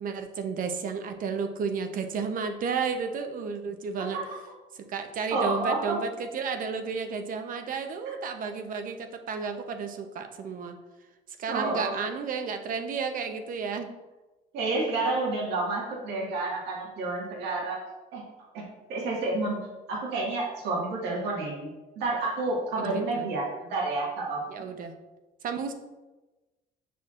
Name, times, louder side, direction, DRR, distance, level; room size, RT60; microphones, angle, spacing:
voice 1, 0.0-4.2 4.9-10.8 11.4-13.9 22.8-23.3 24.5-24.9 25.4-25.7, right 5 dB, 55° right, 6 dB, 0.8 m, -32 dB
voice 2, 5.3-6.0 11.5-12.0 14.5-17.8 18.1-18.2 18.5-18.6 18.9-21.7 22.0-24.4, right 3 dB, 85° right, -3 dB, 1.7 m, -29 dB
6.8 x 6.0 x 2.5 m, 1.1 s
cardioid pair, 110°, 17 cm